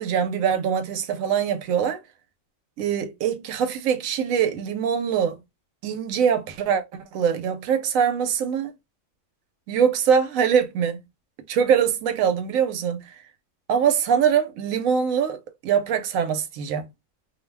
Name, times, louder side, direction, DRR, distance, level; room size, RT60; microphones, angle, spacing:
voice 1, 0.0-2.0 2.8-5.4 5.8-8.7 9.7-11.0 11.5-13.2 13.7-16.9, right 7 dB, 85° right, 1.0 m, -23 dB
2.5 x 2.1 x 3.2 m
omnidirectional pair, 1.4 m